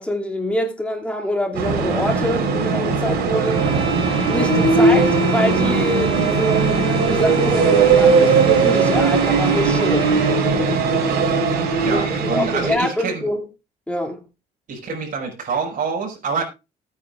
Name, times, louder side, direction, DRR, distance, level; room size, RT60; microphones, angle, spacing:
voice 1, 0.0-3.6 4.3-10.5 11.9-13.4 13.9-14.2, equal, 5° left, 2.7 m, -25 dB
sound 1, 1.5-12.7, right 4 dB, 75° right, 4.3 m, -18 dB
sound 2, 3.4-10.5, right 3 dB, 35° right, 4.6 m, -31 dB
voice 2, 11.8-13.3 14.7-16.4, right 5 dB, 50° right, 5.4 m, -26 dB
19.5 x 9.2 x 2.5 m
cardioid pair, 110°, 17 cm